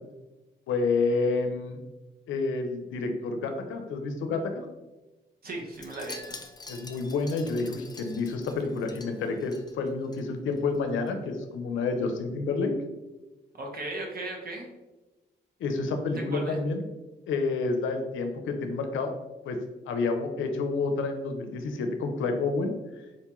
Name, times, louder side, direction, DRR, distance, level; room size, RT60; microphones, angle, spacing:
voice 1, 0.7-1.8 2.3-4.7 6.7-12.7 15.6-16.8 17.3-19.1 19.4-19.6 19.9-22.7, left 3 dB, 80° left, 6 dB, 0.5 m, -29 dB
voice 2, 5.4-6.4 13.5-14.7 16.3-16.6, right 2 dB, 50° right, 1 dB, 0.8 m, -36 dB
Wind chime, 5.7-10.2 10.5-10.8 11.1-11.2, left 3 dB, 20° left, 0.4 m, -46 dB
4.0 x 2.2 x 2.9 m, 1.1 s
cardioid pair, 65°, 20 cm